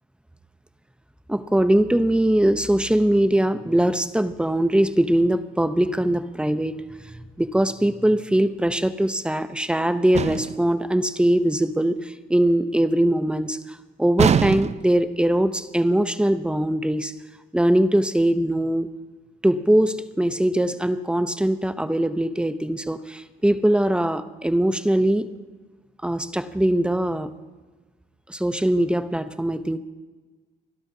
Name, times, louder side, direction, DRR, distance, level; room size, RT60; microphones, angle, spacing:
voice 1, 1.3-17.1 17.5-18.9 19.4-25.3 26.0-27.3 28.3-29.8, right 1 dB, 5° right, 11 dB, 0.7 m, -21 dB
sound 1, 10.1-10.7 14.2-15.0, right 7 dB, 35° right, 0.4 m, -22 dB
29.5 x 12.5 x 2.8 m, 1.3 s
cardioid pair, 90°, 20 cm